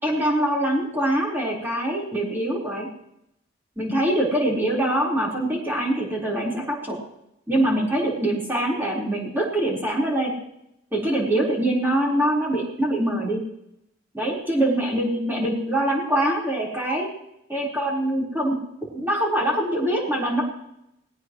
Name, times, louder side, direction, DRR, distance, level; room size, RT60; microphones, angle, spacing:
voice 1, 0.0-2.9 3.8-7.0 7.5-10.3 10.9-13.4 14.1-17.1 17.5-18.6 18.9-20.4, right 1 dB, 10° right, -4 dB, 4.3 m, -24 dB
19.5 x 17.5 x 3.1 m, 0.81 s
head